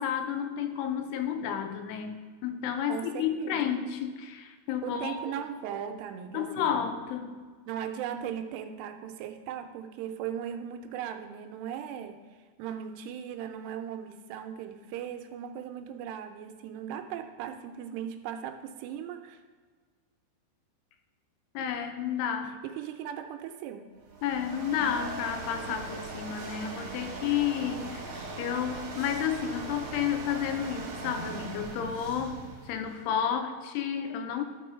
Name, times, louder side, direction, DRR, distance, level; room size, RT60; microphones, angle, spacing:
voice 1, 0.0-5.2 6.3-7.5 21.5-22.6 24.2-34.4, left 8 dB, 80° left, 6 dB, 2.6 m, -31 dB
voice 2, 2.9-3.8 4.8-6.8 7.7-12.2 12.6-19.4 22.6-23.9, right 9 dB, 85° right, 6 dB, 2.8 m, -38 dB
sound 1, 24.0-33.2, right 3 dB, 60° right, 2.5 m, -40 dB
13.0 x 4.5 x 4.3 m, 1.5 s
omnidirectional pair, 4.8 m